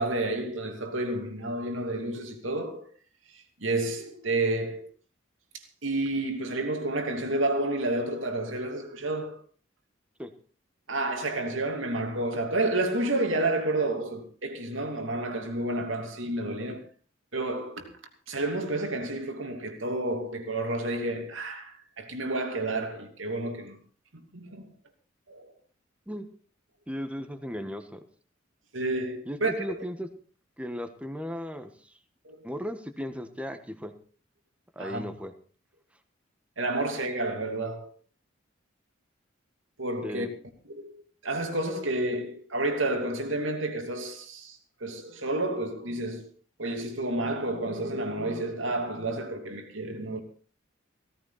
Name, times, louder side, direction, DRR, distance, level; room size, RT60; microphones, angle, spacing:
voice 1, 0.0-2.9 3.3-4.9 5.5-9.4 10.9-16.8 17.3-17.9 18.3-23.8 24.1-24.7 25.3-25.5 28.7-29.5 32.2-32.4 34.8-35.0 36.6-37.9 39.8-40.3 40.7-46.3 46.6-50.2, right 2 dB, 90° right, 2.8 m, -30 dB
voice 2, 26.9-28.0 29.2-30.1 30.6-31.9 32.4-33.9 34.7-35.3 40.0-40.3, equal, 5° right, 1.4 m, -36 dB
17.0 x 14.5 x 4.2 m
head